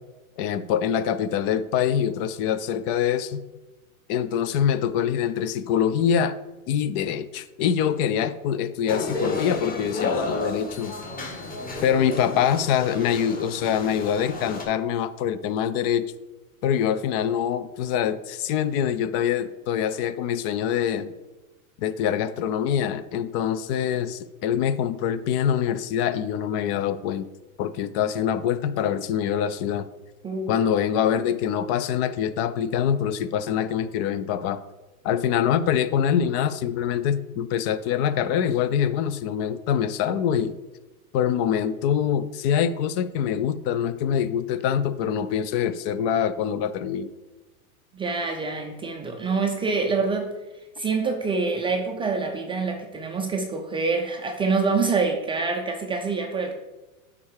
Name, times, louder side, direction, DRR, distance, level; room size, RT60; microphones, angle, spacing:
voice 1, 0.4-3.4 4.1-6.4 6.7-10.9 11.8-16.1 16.6-21.1 21.8-27.3 27.6-29.9 30.5-34.6 35.0-40.6 41.1-47.1, left 9 dB, 45° left, 13 dB, 0.5 m, -24 dB
sound 1, 8.9-14.6, left 2 dB, 20° left, 1.6 m, -32 dB
voice 2, 30.2-30.6 47.9-50.3 50.8-56.5, right 4 dB, 15° right, 3 dB, 0.4 m, -26 dB
8.8 x 3.7 x 4.8 m, 1.1 s
hypercardioid pair, 120°, 43 cm